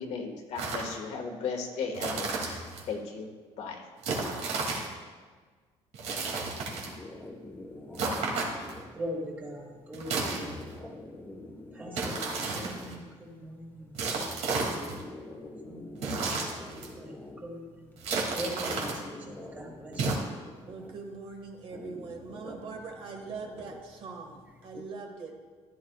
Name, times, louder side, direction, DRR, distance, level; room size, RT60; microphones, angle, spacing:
voice 1, 0.0-2.6 2.9-3.3 3.6-3.8, left 5 dB, 65° left, 2 dB, 1.7 m, -36 dB
sound 1, 0.6-0.9 1.9-2.8 4.0-4.9 5.9-7.0 7.9-8.8 9.9-10.8 11.9-12.9 13.9-15.0 16.0-16.9 18.0-19.0 19.9-20.2, right 3 dB, 75° right, 2.5 m, -32 dB
sound 2, 6.8-24.8, left 1 dB, 15° left, 1.2 m, -47 dB
voice 2, 8.9-10.7 11.7-14.9 15.6-17.8 18.3-20.2, equal, 15° right, -1 dB, 2.0 m, -42 dB
voice 3, 20.7-25.3, right 4 dB, 50° right, 2 dB, 1.6 m, -42 dB
15.0 x 11.0 x 2.4 m, 1.5 s
cardioid pair, 140°, 12 cm